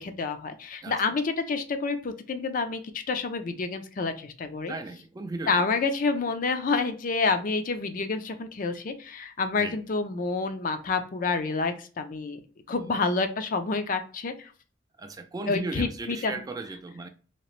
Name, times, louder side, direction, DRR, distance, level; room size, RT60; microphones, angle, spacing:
voice 1, 0.0-2.8 3.1-4.7 5.5-12.4 12.7-14.5 15.5-16.3, left 4 dB, 45° left, 0.4 m, -28 dB
voice 2, 0.8-1.2 4.7-5.7 9.6-9.8 12.7-12.9 15.0-17.1, right 3 dB, 20° right, 0.3 m, -37 dB
2.9 x 2.8 x 3.0 m
head